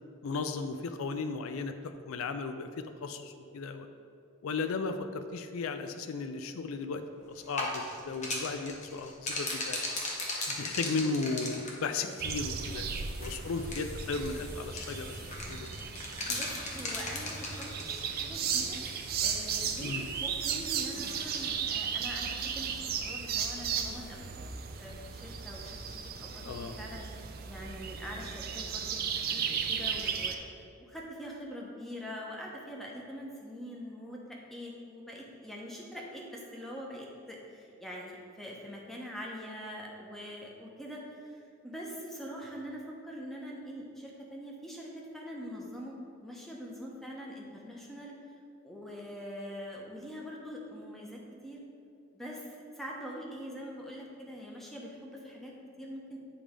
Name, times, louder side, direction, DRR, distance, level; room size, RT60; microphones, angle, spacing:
voice 1, 0.2-3.9 4.4-7.0 7.3-9.8 10.5-12.9 13.2-15.7 19.8-20.0 26.4-26.7, left 4 dB, 75° left, 8 dB, 0.4 m, -35 dB
sound 1, 7.3-21.5, left 2 dB, 35° left, 1.0 m, -39 dB
sound 2, 12.2-30.4, right 7 dB, 45° right, 0.4 m, -35 dB
voice 2, 12.7-13.1 16.3-18.8 19.2-24.3 24.8-45.9 46.2-48.1 48.6-51.6 52.1-55.5 55.8-56.2, equal, ahead, -2 dB, 0.9 m, -44 dB
9.0 x 3.4 x 5.1 m, 2.5 s
head